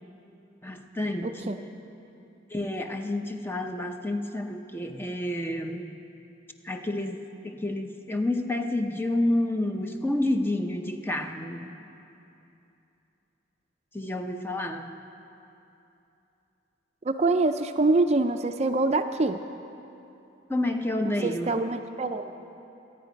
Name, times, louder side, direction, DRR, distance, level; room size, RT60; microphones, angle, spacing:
voice 1, 0.6-1.6 2.5-6.0 6.6-11.8 13.9-14.9 20.5-21.6, left 1 dB, 10° left, 5 dB, 0.6 m, -29 dB
voice 2, 1.2-1.6 17.0-19.4 21.1-22.3, right 2 dB, 35° right, 8 dB, 0.5 m, -25 dB
24.5 x 9.0 x 5.2 m, 2.8 s
head